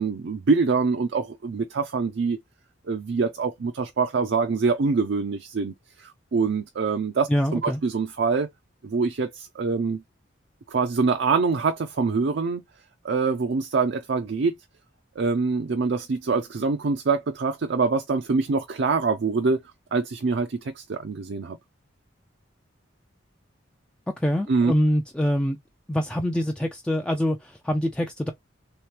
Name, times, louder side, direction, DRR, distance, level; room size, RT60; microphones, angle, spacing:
voice 1, 0.0-2.4 2.8-8.5 8.8-10.0 10.7-12.6 13.0-14.6 15.2-19.6 19.9-21.6 24.5-24.7, right 4 dB, 60° right, 0.4 m, -25 dB
voice 2, 7.3-7.8 24.2-25.6 25.9-28.3, equal, 5° left, 0.3 m, -25 dB
3.2 x 2.9 x 3.2 m
head